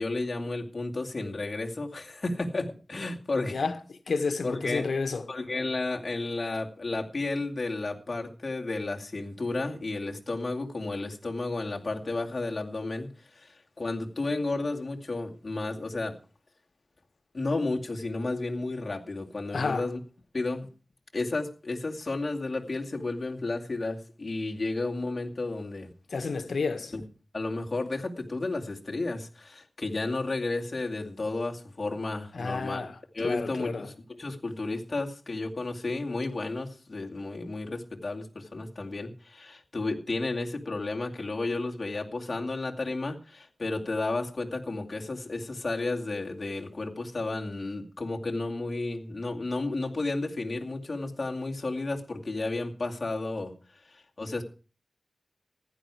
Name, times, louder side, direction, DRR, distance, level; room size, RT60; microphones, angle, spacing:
voice 1, 0.0-3.6 4.4-4.9 5.3-16.2 17.3-20.0 20.3-20.7 21.1-25.9 26.9-27.0 27.3-32.8 33.1-53.5 53.8-54.4, left 2 dB, 50° left, 2.4 m, -32 dB
voice 2, 4.1-5.2 19.5-19.9 26.1-26.9 32.3-32.9 33.2-33.9, left 4 dB, 85° left, 1.5 m, -30 dB
15.0 x 11.0 x 4.8 m
wide cardioid pair, 75°, 0 cm